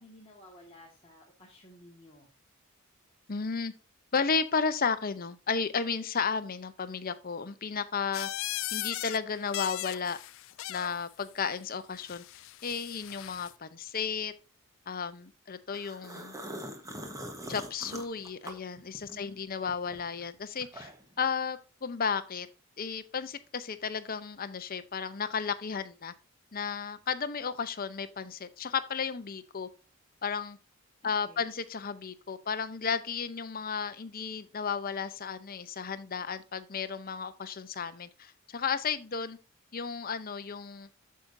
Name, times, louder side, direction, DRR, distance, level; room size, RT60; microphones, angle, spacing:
voice 1, 0.0-2.3 19.1-19.4 31.0-31.5, left 1 dB, 25° left, -3 dB, 1.8 m, -54 dB
voice 2, 3.3-3.7 4.1-8.3 8.7-10.2 10.7-12.2 12.6-14.3 14.9-16.3 17.5-20.9 21.2-22.5 22.8-26.1 26.5-29.7 30.2-30.6 31.0-39.4 39.7-40.9, left 6 dB, 45° left, 11 dB, 0.7 m, -33 dB
sound 1, 8.1-9.2 9.5-11.0 12.0-13.5, left 16 dB, 65° left, 0.3 m, -38 dB
sound 2, 15.7-19.3 19.7-21.2, equal, 15° right, 1.2 m, -43 dB
8.5 x 7.3 x 2.7 m, 0.33 s
head